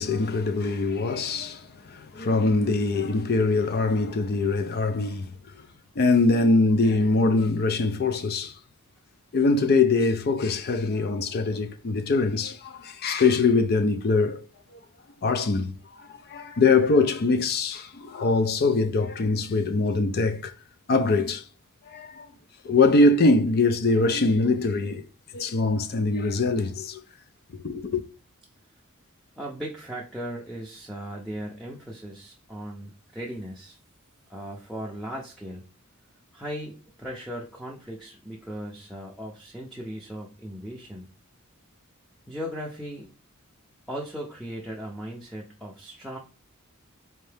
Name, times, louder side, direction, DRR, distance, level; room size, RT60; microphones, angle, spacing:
voice 1, 0.0-5.3 6.0-8.5 9.3-14.4 15.2-15.8 16.1-20.5 20.9-21.4 21.9-22.3 22.6-25.0 25.3-27.0 27.6-28.0, left 3 dB, 45° left, 0.5 m, -23 dB
voice 2, 29.4-33.8 34.3-35.6 36.3-41.1 42.3-43.1 43.9-46.2, equal, ahead, 0.6 m, -37 dB
4.5 x 2.7 x 3.4 m
head